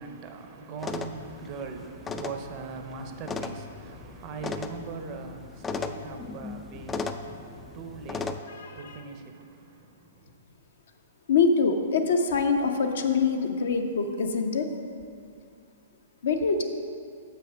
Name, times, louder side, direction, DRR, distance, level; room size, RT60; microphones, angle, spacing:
voice 1, 0.0-10.4, right 5 dB, 40° right, 6 dB, 0.7 m, -41 dB
sound 1, 0.8-8.4, left 4 dB, 15° left, 0.4 m, -37 dB
voice 2, 8.5-9.0 11.3-14.7 16.2-16.6, left 4 dB, 65° left, 5 dB, 0.7 m, -24 dB
7.1 x 5.8 x 5.1 m, 2.4 s
figure-of-eight pair, 115°, 0 cm